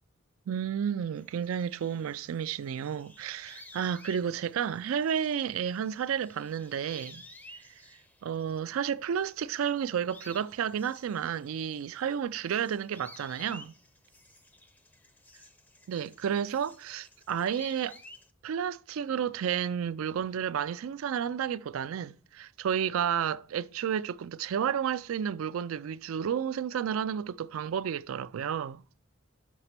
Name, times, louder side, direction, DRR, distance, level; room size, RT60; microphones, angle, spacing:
voice 1, 0.5-7.2 8.2-13.7 15.9-18.0 18.4-28.8, right 8 dB, 75° right, 0.3 m, -31 dB
sound 1, 1.2-8.9 9.2-18.3, left 1 dB, 10° left, 0.5 m, -54 dB
5.9 x 5.4 x 5.7 m
head